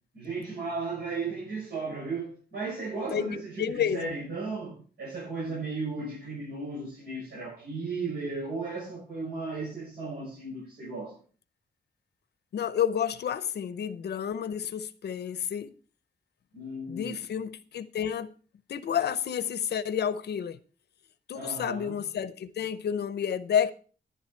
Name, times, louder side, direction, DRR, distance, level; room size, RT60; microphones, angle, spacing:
voice 1, 0.1-11.1 16.5-17.2 21.3-22.0, right 3 dB, 65° right, 6.7 m, -35 dB
voice 2, 3.1-4.1 12.5-15.7 16.9-18.3 18.7-20.6 21.3-23.7, left 8 dB, 75° left, 0.7 m, -30 dB
11.0 x 10.5 x 4.5 m
wide cardioid pair, 155°, 17 cm